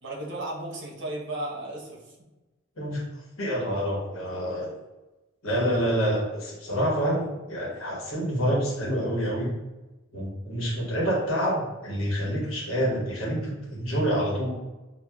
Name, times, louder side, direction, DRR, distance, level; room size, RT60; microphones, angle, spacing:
voice 1, 0.0-2.0, right 1 dB, 60° right, -2 dB, 0.8 m, -34 dB
voice 2, 3.4-4.7 5.4-9.5 10.1-14.5, equal, 75° left, -3 dB, 1.0 m, -27 dB
4.3 x 2.3 x 2.3 m, 1.1 s
head